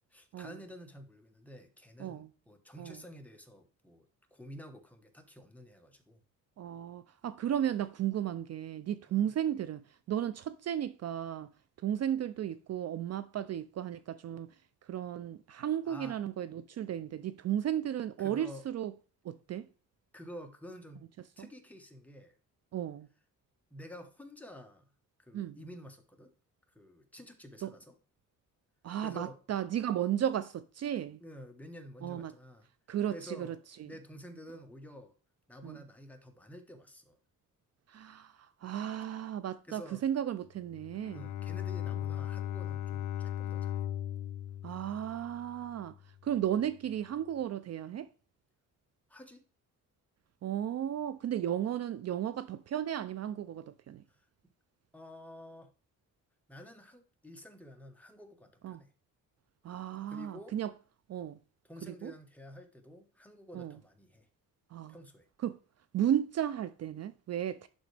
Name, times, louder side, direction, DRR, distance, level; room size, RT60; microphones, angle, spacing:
voice 1, 0.1-4.0 4.3-6.2 9.1-9.2 15.8-16.2 18.2-18.6 20.1-21.0 21.4-22.3 23.7-24.9 25.2-26.3 26.7-28.0 29.0-29.4 31.2-32.7 33.1-33.5 33.8-35.1 35.5-37.2 39.7-40.0 41.1-43.8 49.1-49.4 54.2-54.3 54.9-55.7 56.5-58.9 60.1-60.6 61.7-64.3 64.9-65.3, equal, 5° left, 1.2 m, -50 dB
voice 2, 6.6-11.5 11.8-14.6 14.8-18.9 19.2-19.7 21.4-21.5 22.7-23.1 25.3-25.6 27.6-27.7 28.8-31.2 32.0-32.3 32.9-33.9 35.6-35.8 37.9-41.3 44.6-48.1 50.4-54.0 58.6-58.8 59.6-60.7 61.1-61.4 61.8-62.1 63.5-63.8 64.7-65.0 65.4-65.6 65.9-67.7, right 10 dB, 50° right, 0.4 m, -34 dB
Bowed string instrument, 40.7-45.9, left 11 dB, 65° left, 0.5 m, -37 dB
11.0 x 3.8 x 3.3 m
cardioid pair, 105°, 33 cm